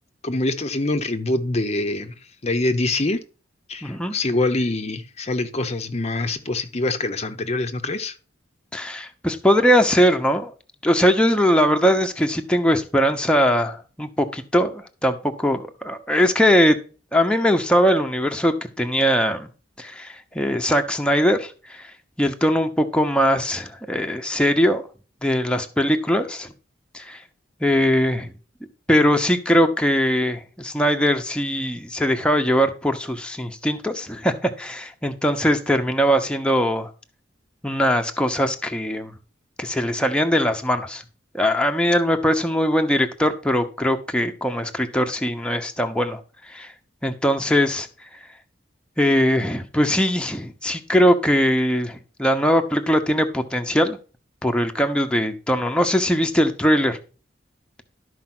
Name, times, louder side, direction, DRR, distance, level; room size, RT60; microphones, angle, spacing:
voice 1, 0.2-2.1 2.4-3.2 3.7-8.1, left 2 dB, 35° left, 0.8 m, -24 dB
voice 2, 3.8-4.1 8.7-10.5 10.8-16.8 17.1-19.5 19.8-21.9 22.2-24.8 25.2-26.5 26.9-27.2 27.6-28.3 28.9-36.9 37.6-39.1 39.6-41.0 41.3-46.2 46.5-46.7 47.0-47.9 49.0-54.0 54.4-57.0, equal, 5° left, 0.9 m, -21 dB
12.0 x 4.8 x 6.0 m
head